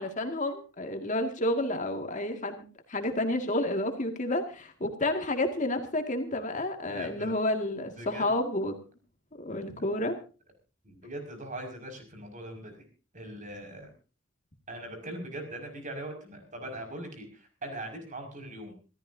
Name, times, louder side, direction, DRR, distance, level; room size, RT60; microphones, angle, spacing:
voice 1, 0.0-2.6 2.9-8.8 9.4-10.2, left 1 dB, 40° left, 5 dB, 2.0 m, -30 dB
voice 2, 6.9-7.3 8.0-8.3 10.8-12.9 13.1-13.9 14.7-18.8, right 1 dB, 40° right, 4 dB, 5.6 m, -41 dB
27.0 x 14.0 x 2.7 m, 0.35 s
head